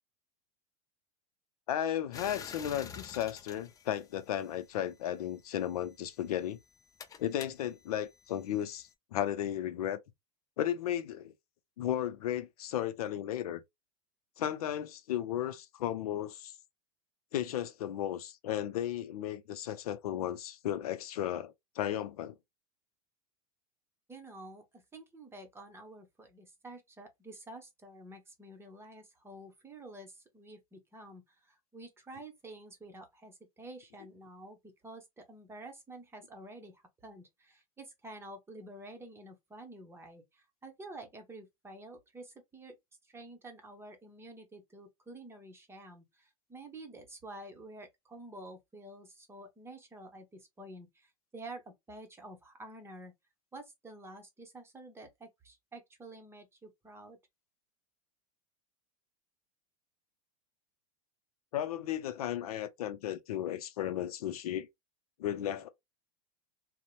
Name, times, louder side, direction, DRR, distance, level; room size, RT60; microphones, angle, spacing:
voice 1, 1.7-6.6 7.2-10.0 10.6-11.3 11.8-13.6 14.4-16.5 17.3-22.3 61.5-64.7 65.2-65.7, left 11 dB, 80° left, 0.5 m, -34 dB
sound 1, 2.1-4.8 5.7-8.9, left 7 dB, 20° left, 0.3 m, -49 dB
voice 2, 24.1-34.6 34.8-42.8 43.0-53.1 53.5-57.2, right 2 dB, 15° right, 0.8 m, -49 dB
2.8 x 2.1 x 2.4 m
hypercardioid pair, 110°, 19 cm